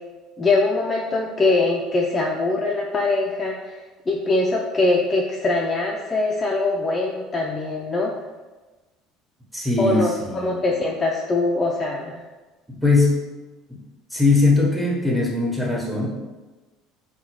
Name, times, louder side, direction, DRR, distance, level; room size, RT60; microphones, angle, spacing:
voice 1, 0.4-3.8 4.1-8.1 9.8-12.2, left 2 dB, 25° left, -2 dB, 0.4 m, -22 dB
voice 2, 9.5-10.6 12.7-13.2 13.7-13.8 14.1-16.1, left 3 dB, ahead, -3 dB, 1.1 m, -20 dB
3.6 x 2.2 x 3.0 m, 1.2 s
hypercardioid pair, 70°, 0 cm